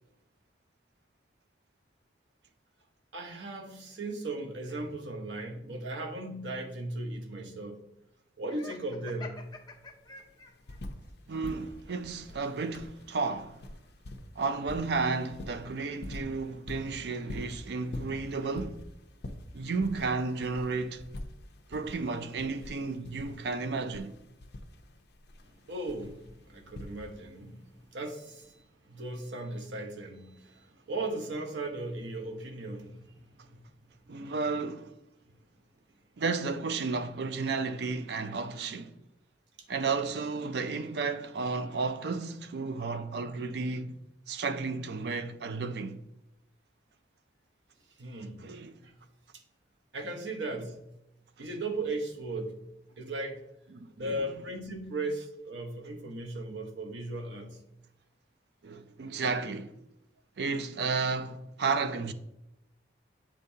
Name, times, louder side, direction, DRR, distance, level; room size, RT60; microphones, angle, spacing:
voice 1, 3.1-7.8 8.4-9.3 25.4-27.7 27.9-33.7 48.0-48.5 48.8-48.9 49.9-50.8 51.4-52.6 53.0-53.4 54.0-57.6, right 2 dB, 75° right, 0.9 m, -37 dB
Laughter, 8.5-10.8, left 3 dB, 20° left, 0.6 m, -47 dB
sound 1, 9.4-9.5 9.7-11.1 11.4-27.4 28.4-28.5, left 1 dB, 60° left, 0.6 m, -44 dB
voice 2, 11.3-13.6 14.4-18.8 19.5-21.0 21.7-24.1 34.1-34.9 36.2-39.0 39.7-44.0 44.3-46.0 48.4-48.7 53.7-54.3 58.6-59.8 60.4-62.1, right 4 dB, 60° right, 0.4 m, -33 dB
7.3 x 5.2 x 2.7 m
head